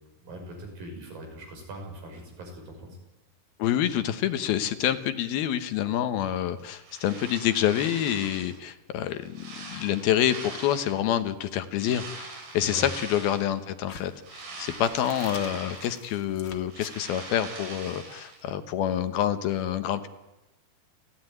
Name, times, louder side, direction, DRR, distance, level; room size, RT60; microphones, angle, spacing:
voice 1, 0.2-3.0 12.6-12.9, right 1 dB, 60° right, 2 dB, 7.5 m, -41 dB
voice 2, 3.6-20.1, left 11 dB, 75° left, 10 dB, 3.0 m, -27 dB
sound 1, 6.6-8.6 9.1-11.1 11.7-13.6 14.0-16.2 16.5-18.4, right 3 dB, 85° right, 7.0 m, -42 dB
sound 2, 13.9-18.0, left 5 dB, 45° left, 1.5 m, -47 dB
29.0 x 15.5 x 9.3 m, 1.0 s
omnidirectional pair, 4.5 m